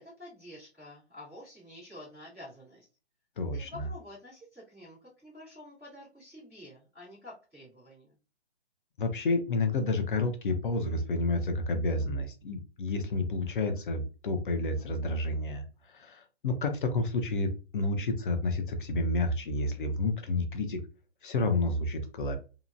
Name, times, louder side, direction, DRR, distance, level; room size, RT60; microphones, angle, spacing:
voice 1, 0.0-2.9 3.5-8.2, left 1 dB, ahead, -30 dB, 0.3 m, -49 dB
voice 2, 3.4-3.9 9.0-20.8 21.2-22.4, left 2 dB, 50° left, 7 dB, 0.6 m, -30 dB
2.8 x 2.1 x 2.5 m, 0.33 s
hypercardioid pair, 150°, 33 cm